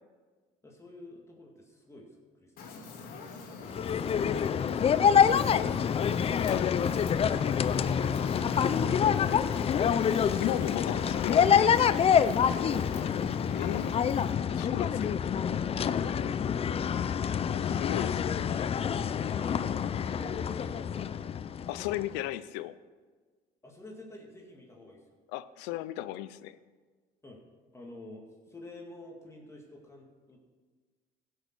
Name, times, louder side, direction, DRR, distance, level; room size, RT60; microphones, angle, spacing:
voice 1, 0.6-2.7 18.5-21.2 23.6-25.2 27.2-27.4 27.7-30.4, left 1 dB, 15° left, -1 dB, 2.1 m, -50 dB
Fire, 2.6-14.3, left 4 dB, 60° left, 2.3 m, -43 dB
sound 1, 3.7-22.1, left 7 dB, 35° left, 0.5 m, -27 dB
voice 2, 5.1-5.7 6.5-6.7 7.4-7.6 10.4-12.0 13.5-14.0 14.5-15.2 17.3-18.3 21.7-22.8 25.3-26.6, left 14 dB, 90° left, 15 dB, 0.5 m, -36 dB
15.5 x 6.4 x 6.1 m, 1.4 s
supercardioid pair, 90°, 17 cm